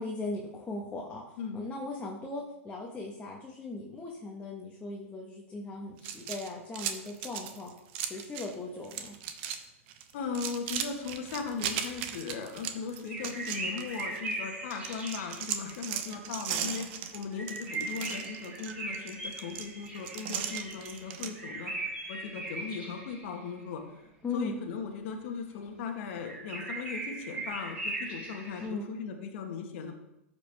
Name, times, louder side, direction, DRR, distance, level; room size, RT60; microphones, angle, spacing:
voice 1, 0.0-7.7 8.0-9.2 24.2-24.6 28.6-28.9, left 3 dB, 15° left, -3 dB, 1.5 m, -38 dB
sound 1, 6.0-8.5 8.8-9.6 9.9-14.3 14.7-21.3, right 9 dB, 50° right, 0.9 m, -37 dB
voice 2, 10.1-21.7 22.1-29.9, left 5 dB, 60° left, 3 dB, 1.6 m, -38 dB
sound 2, 13.1-15.7 17.3-23.6 26.2-28.7, right 2 dB, 15° right, 3.5 m, -39 dB
13.0 x 5.1 x 3.5 m, 0.85 s
hypercardioid pair, 110°, 8 cm